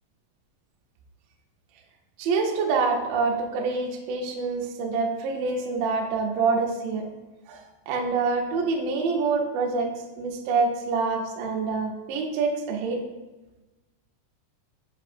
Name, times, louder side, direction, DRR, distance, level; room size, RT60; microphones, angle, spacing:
voice 1, 2.2-7.1 7.5-13.0, right 4 dB, 85° right, 1 dB, 2.0 m, -26 dB
7.6 x 5.8 x 2.5 m, 1.1 s
omnidirectional pair, 5.0 m